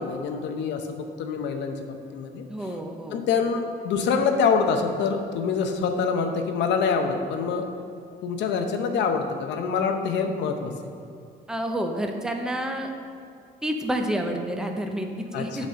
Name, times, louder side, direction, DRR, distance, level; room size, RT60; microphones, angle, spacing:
voice 1, 0.0-2.4 3.1-7.7 8.2-10.7 15.3-15.7, left 5 dB, 85° left, 6 dB, 0.8 m, -25 dB
voice 2, 2.5-3.2 7.6-7.7 11.5-12.9 13.6-15.7, right 1 dB, 5° right, 3 dB, 0.7 m, -29 dB
8.2 x 4.2 x 6.3 m, 2.5 s
cardioid pair, 125°, 18 cm